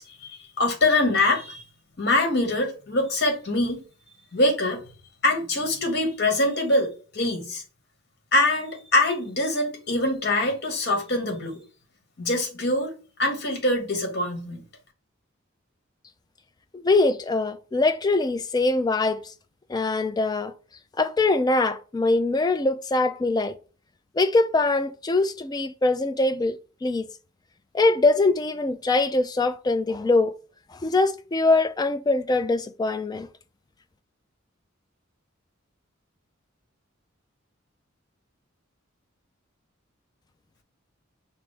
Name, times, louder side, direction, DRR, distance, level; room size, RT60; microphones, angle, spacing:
voice 1, 0.0-1.6 2.0-3.8 4.3-4.8 5.2-7.6 8.3-11.6 12.2-14.6, left 2 dB, 55° left, 1.2 m, -24 dB
voice 2, 16.7-19.3 19.7-20.5 21.0-23.6 24.1-27.0 27.7-30.3 30.7-33.3, left 2 dB, 20° left, 0.3 m, -23 dB
5.9 x 2.0 x 3.3 m
head